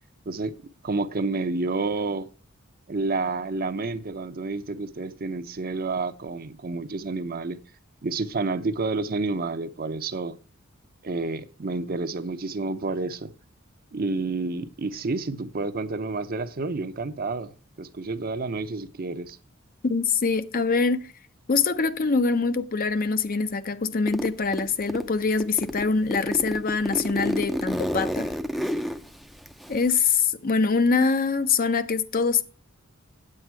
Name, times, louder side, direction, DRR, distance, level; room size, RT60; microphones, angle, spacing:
voice 1, 0.8-2.3 2.9-7.6 8.0-10.3 11.0-13.3 13.9-19.4, right 3 dB, 45° right, 0.7 m, -29 dB
voice 2, 19.8-21.1 21.5-28.3 29.7-32.4, left 4 dB, 45° left, 0.6 m, -24 dB
Zipper (clothing), 24.1-25.1 25.4-30.1, equal, ahead, 0.5 m, -30 dB
9.0 x 7.7 x 4.7 m
head